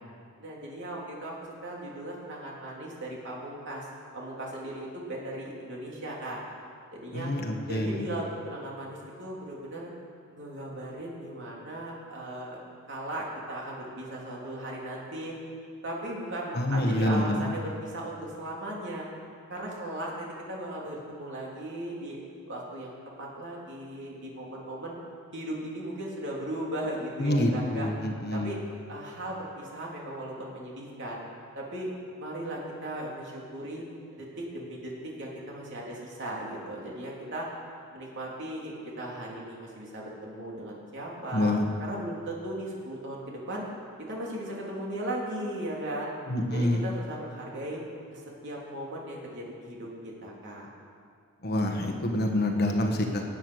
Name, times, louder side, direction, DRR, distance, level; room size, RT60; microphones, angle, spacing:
voice 1, 0.4-3.9 4.1-6.4 6.9-7.3 7.6-9.9 10.3-12.6 12.9-15.3 15.8-19.1 19.5-22.2 22.5-25.0 25.3-27.9 28.3-28.6 28.9-31.2 31.5-31.9 32.2-33.8 34.2-37.5 37.9-41.5 41.8-43.7 44.0-46.1 46.5-47.8 48.1-50.7, right 1 dB, 55° right, -3 dB, 3.3 m, -37 dB
voice 2, 7.1-8.1 16.5-17.5 27.2-28.6 41.3-41.7 46.3-46.9 51.4-53.2, left 1 dB, 45° left, 3 dB, 1.5 m, -27 dB
18.5 x 8.9 x 6.4 m, 2.3 s
head